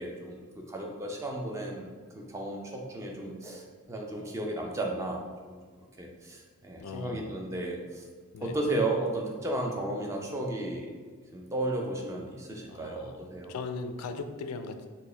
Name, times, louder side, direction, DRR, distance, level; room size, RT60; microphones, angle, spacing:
voice 1, 0.0-5.6 6.0-8.0 8.4-10.9 11.3-13.5, right 1 dB, 15° right, 0 dB, 0.4 m, -34 dB
voice 2, 6.8-7.4 8.3-8.6 12.7-14.9, left 4 dB, 85° left, 8 dB, 0.3 m, -39 dB
4.3 x 2.1 x 3.2 m, 1.5 s
head